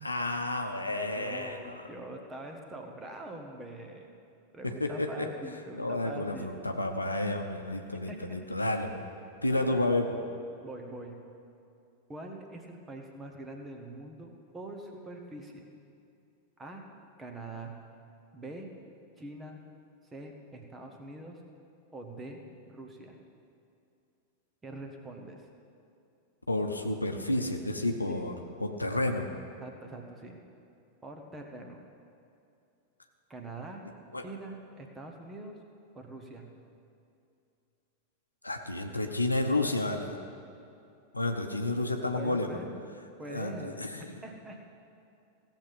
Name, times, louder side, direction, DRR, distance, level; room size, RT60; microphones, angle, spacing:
voice 1, 0.0-1.8 4.6-5.3 5.8-9.0 9.4-10.2 26.5-28.3 28.6-29.3 34.1-34.2 38.4-40.1 41.1-42.5 43.3-44.1, left 2 dB, 85° left, 4 dB, 0.8 m, -31 dB
voice 2, 1.2-4.2 4.5-6.5 8.1-8.4 9.5-9.9 10.6-11.2 12.1-15.7 16.6-16.8 17.2-17.7 18.3-18.7 19.2-19.6 20.1-21.4 21.9-22.4 22.7-23.2 24.6-25.4 28.1-28.2 29.6-30.4 31.0-31.8 33.3-33.9 34.2-35.5 35.9-36.5 42.1-42.7 43.2-43.8 44.2-44.6, right 2 dB, 15° right, 3 dB, 1.5 m, -44 dB
16.5 x 7.4 x 5.5 m, 2.6 s
figure-of-eight pair, 90°, 0 cm